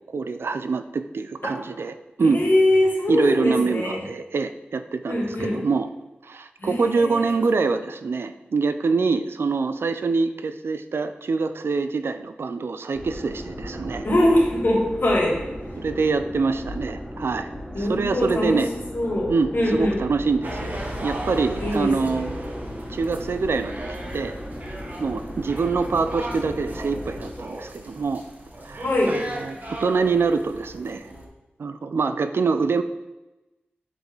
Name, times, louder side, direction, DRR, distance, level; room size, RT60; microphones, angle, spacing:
voice 1, 0.1-2.4 3.1-5.9 6.2-14.1 15.8-17.5 17.8-18.7 19.3-22.4 22.9-23.7 24.1-24.4 25.0-28.2 28.6-31.0 31.6-32.8, right 4 dB, 80° right, 10 dB, 0.4 m, -25 dB
voice 2, 2.2-4.0 5.1-5.6 6.6-7.3 14.0-15.3 17.7-18.6 18.9-20.0 21.6-22.2 28.8-29.1, left 1 dB, 65° left, -4 dB, 2.6 m, -22 dB
sound 1, 12.9-27.3, equal, 5° right, 1.5 m, -36 dB
sound 2, 20.4-31.3, right 1 dB, 45° right, 1.4 m, -36 dB
7.6 x 4.8 x 3.9 m, 1.0 s
cardioid pair, 55°, 4 cm